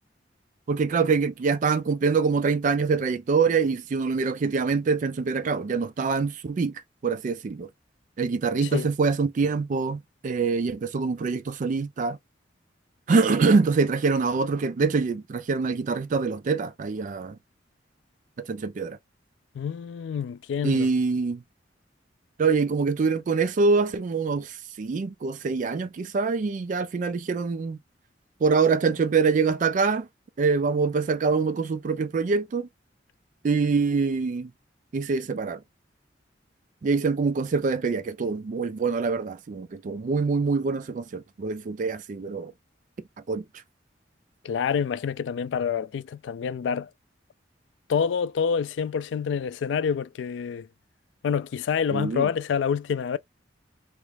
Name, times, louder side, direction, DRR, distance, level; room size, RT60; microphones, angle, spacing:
voice 1, 0.7-6.7 7.0-7.7 8.2-12.2 13.1-17.4 18.5-19.0 20.6-21.4 22.4-27.8 28.4-30.1 30.4-32.7 33.4-34.5 34.9-35.6 36.8-42.5 43.3-43.4 51.9-52.3, right 4 dB, 45° right, 0.3 m, -25 dB
voice 2, 19.5-20.9 44.4-46.9 47.9-50.7 51.2-53.2, left 7 dB, 80° left, 0.3 m, -27 dB
3.0 x 2.4 x 3.3 m
head